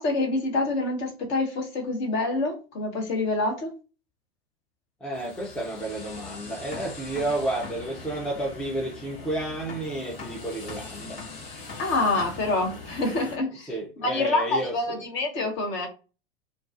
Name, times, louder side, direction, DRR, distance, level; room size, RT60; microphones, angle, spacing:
voice 1, 0.0-3.7 11.8-13.7 14.0-15.9, left 2 dB, 40° left, 1.0 m, -26 dB
voice 2, 5.0-11.2 13.6-15.0, right 1 dB, 5° left, 0.4 m, -31 dB
sound 1, 5.1-13.4, left 4 dB, 65° left, 1.1 m, -41 dB
2.3 x 2.3 x 2.5 m
figure-of-eight pair, 90°, 30 cm